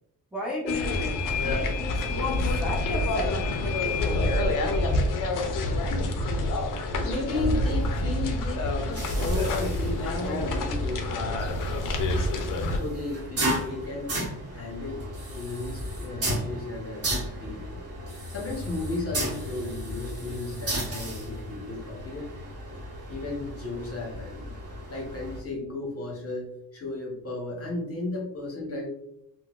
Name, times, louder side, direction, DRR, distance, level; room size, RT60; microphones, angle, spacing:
voice 1, 0.3-5.1, left 1 dB, ahead, -5 dB, 0.7 m, -36 dB
sound 1, 0.7-12.8, left 2 dB, 55° left, 0.6 m, -27 dB
voice 2, 7.0-11.9 12.6-14.1 14.5-17.0 17.4-17.9 18.3-22.3 23.1-24.4 24.9-28.9, left 2 dB, 35° left, -1 dB, 1.0 m, -34 dB
sound 2, 8.6-25.4, right 1 dB, 40° right, 1.0 m, -35 dB
3.8 x 2.2 x 2.4 m, 0.78 s
cardioid pair, 115°, 39 cm